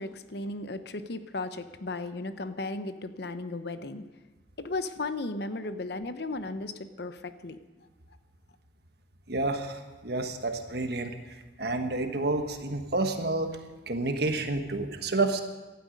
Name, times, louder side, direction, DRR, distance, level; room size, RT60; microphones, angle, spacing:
voice 1, 0.0-4.0 4.6-7.6, left 2 dB, 60° left, 11 dB, 0.8 m, -35 dB
voice 2, 9.3-13.6 13.9-15.4, right 2 dB, 60° right, 6 dB, 1.4 m, -30 dB
17.5 x 12.0 x 5.3 m, 1.2 s
head